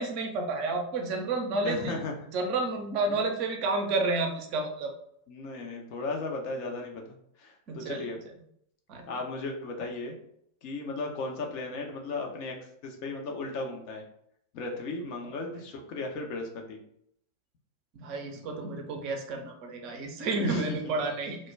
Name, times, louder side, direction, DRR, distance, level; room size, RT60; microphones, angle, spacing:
voice 1, 0.0-2.0 2.3-4.9 7.7-8.0 8.9-9.1 17.9-21.4, right 3 dB, 40° right, 3 dB, 0.5 m, -30 dB
voice 2, 1.6-2.1 3.1-3.2 5.3-8.2 9.1-10.2 10.6-14.0 14.5-16.8 20.4-20.9, left 3 dB, 45° left, 2 dB, 0.5 m, -36 dB
2.2 x 2.1 x 3.2 m, 0.70 s
figure-of-eight pair, 90°, 0 cm